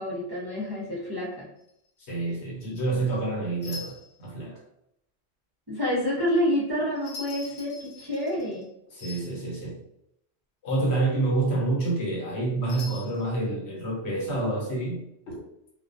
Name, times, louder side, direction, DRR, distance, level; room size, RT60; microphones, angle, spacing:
voice 1, 0.0-1.5 5.7-8.6, equal, 30° right, -7 dB, 0.5 m, -28 dB
sound 1, 1.6-1.9 3.6-4.2 7.0-8.7 9.0-9.4 12.7-13.3, left 3 dB, 45° left, 0.6 m, -42 dB
voice 2, 2.0-4.6 8.9-9.8 10.6-15.4, right 2 dB, 70° left, -3 dB, 1.1 m, -28 dB
2.2 x 2.2 x 2.5 m, 0.79 s
omnidirectional pair, 1.2 m